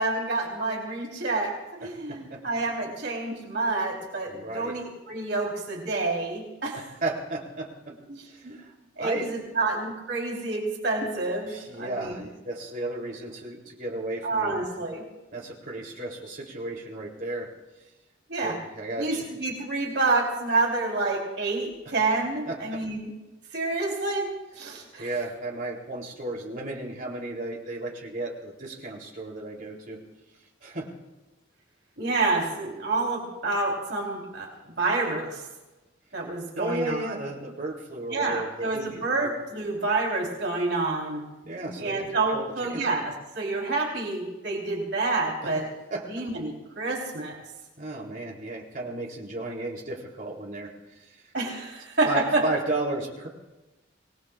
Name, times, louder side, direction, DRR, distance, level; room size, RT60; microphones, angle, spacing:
voice 1, 0.0-1.5 1.8-6.9 8.1-8.5 9.0-11.5 11.8-12.3 14.2-15.0 18.3-18.6 19.0-23.1 23.5-25.1 32.0-35.5 36.1-37.2 38.1-41.2 41.8-45.7 46.1-47.4 51.3-52.4, right 3 dB, 65° right, -1 dB, 3.8 m, -28 dB
voice 2, 1.8-2.4 4.3-4.8 6.7-7.9 8.3-8.7 9.0-9.3 11.4-14.5 15.3-17.5 18.4-19.3 22.4-22.8 25.0-30.0 30.6-30.9 36.5-39.3 41.4-42.9 45.4-45.5 45.9-46.2 47.8-50.7 51.0-51.2 52.0-53.3, right 2 dB, 45° right, -1 dB, 3.4 m, -34 dB
26.5 x 19.5 x 2.5 m, 1.1 s
head